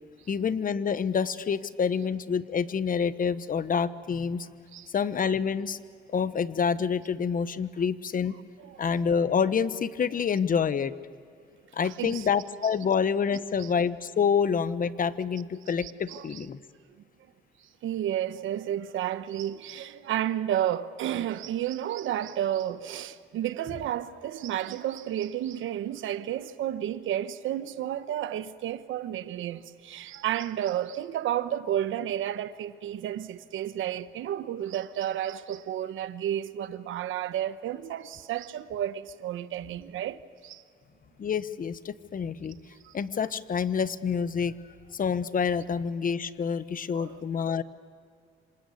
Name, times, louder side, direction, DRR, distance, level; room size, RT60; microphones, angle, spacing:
voice 1, 0.3-4.5 4.9-5.8 6.1-8.4 8.8-10.9 11.7-16.6 41.2-42.6 42.9-44.5 44.9-47.6, left 6 dB, 45° left, 1.1 m, -27 dB
voice 2, 11.8-12.3 12.8-12.9 13.6-13.7 15.8-16.4 17.8-40.6 42.8-42.9 46.9-47.2, right 11 dB, 80° right, 1.2 m, -32 dB
27.0 x 26.0 x 8.5 m
cardioid pair, 90°, 20 cm